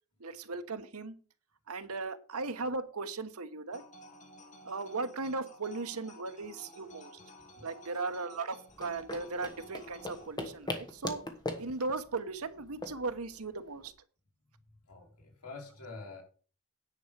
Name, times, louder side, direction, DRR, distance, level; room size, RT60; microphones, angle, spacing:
voice 1, 0.2-1.1 1.7-3.8 4.6-7.2 7.6-11.2 11.6-13.9, right 3 dB, 70° right, 1.1 m, -37 dB
sound 1, 3.7-10.3, equal, 35° left, 1.8 m, -53 dB
sound 2, 8.7-13.9, left 2 dB, 20° left, 1.4 m, -41 dB
voice 2, 14.9-16.2, left 3 dB, 85° left, 3.7 m, -47 dB
10.0 x 5.2 x 6.7 m
head